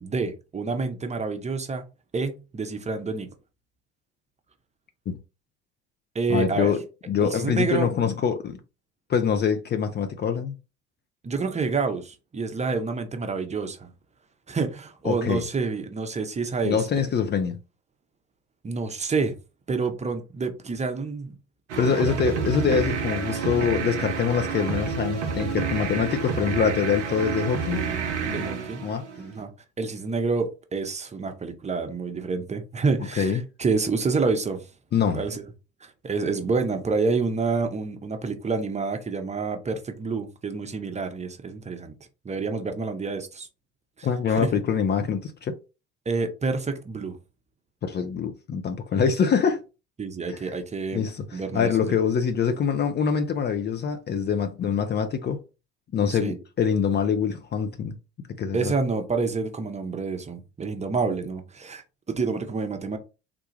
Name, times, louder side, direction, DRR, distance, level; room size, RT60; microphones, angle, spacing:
voice 1, 0.0-1.8 2.1-3.3 6.1-6.7 7.2-7.9 11.2-13.9 14.5-16.8 18.6-19.3 19.7-21.3 23.3-23.5 28.3-28.8 29.2-29.5 29.8-34.6 35.1-35.5 35.8-41.9 42.2-43.5 44.0-44.5 46.1-47.2 50.0-51.0 51.3-51.9 56.1-56.4 58.5-61.8 62.2-63.0, right 4 dB, 20° right, 0.7 m, -28 dB
voice 2, 6.3-8.6 9.1-10.5 15.0-15.4 16.6-17.6 21.8-27.8 28.2-28.5 28.8-29.0 33.2-33.4 34.9-35.2 44.0-45.6 47.8-49.6 50.9-55.4 55.9-58.0 58.4-58.7, left 7 dB, 30° left, 0.5 m, -24 dB
sound 1, 21.7-29.4, right 6 dB, 80° right, 0.6 m, -29 dB
3.6 x 2.3 x 3.1 m
figure-of-eight pair, 60°, 35 cm